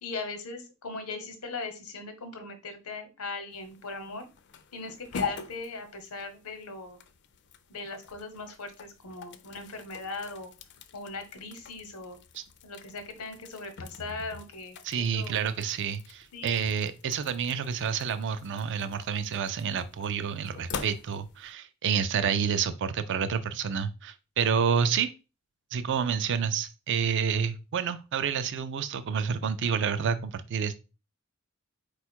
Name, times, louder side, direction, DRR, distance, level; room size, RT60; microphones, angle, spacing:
voice 1, 0.0-4.3 4.7-7.0 7.7-10.5 10.9-12.2 12.6-15.3 16.3-16.5, left 3 dB, 85° left, 0.9 m, -39 dB
sound 1, 3.5-21.5, left 6 dB, 50° left, 0.4 m, -44 dB
voice 2, 14.8-25.1 25.7-30.7, right 7 dB, 55° right, 0.4 m, -29 dB
4.3 x 2.3 x 4.4 m
head